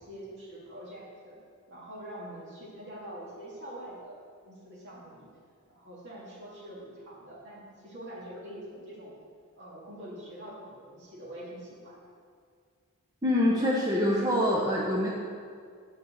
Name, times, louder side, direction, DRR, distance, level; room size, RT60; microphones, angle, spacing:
voice 1, 0.0-1.4 1.7-5.3 5.7-9.1 9.5-12.0, right 1 dB, 50° right, -5 dB, 2.9 m, -44 dB
voice 2, 13.2-15.1, left 1 dB, 15° right, -5 dB, 1.0 m, -25 dB
9.3 x 5.6 x 8.0 m, 2.1 s
head